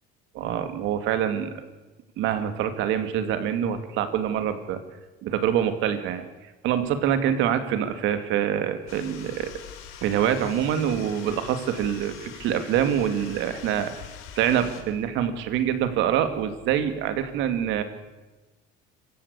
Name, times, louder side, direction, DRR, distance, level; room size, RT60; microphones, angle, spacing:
voice 1, 0.3-1.5 2.2-4.8 5.2-6.2 6.6-9.5 10.0-13.9 14.4-17.8, right 9 dB, 65° right, 9 dB, 2.5 m, -25 dB
sound 1, 8.9-14.8, left 9 dB, 75° left, 4.1 m, -43 dB
27.0 x 15.5 x 8.4 m, 1.2 s
cardioid pair, 140°, 21 cm